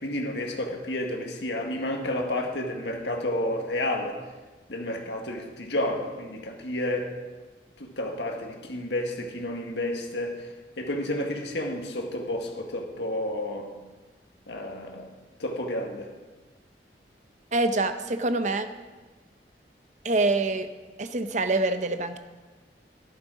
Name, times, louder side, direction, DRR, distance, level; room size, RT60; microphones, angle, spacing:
voice 1, 0.0-4.2 4.7-7.2 7.8-10.5 10.8-13.7 14.5-15.1 15.4-16.1, left 1 dB, 80° left, 2 dB, 1.7 m, -31 dB
voice 2, 17.5-18.7 20.0-20.7 21.0-22.2, right 2 dB, 40° right, 9 dB, 0.8 m, -25 dB
13.5 x 11.0 x 5.0 m, 1.3 s
head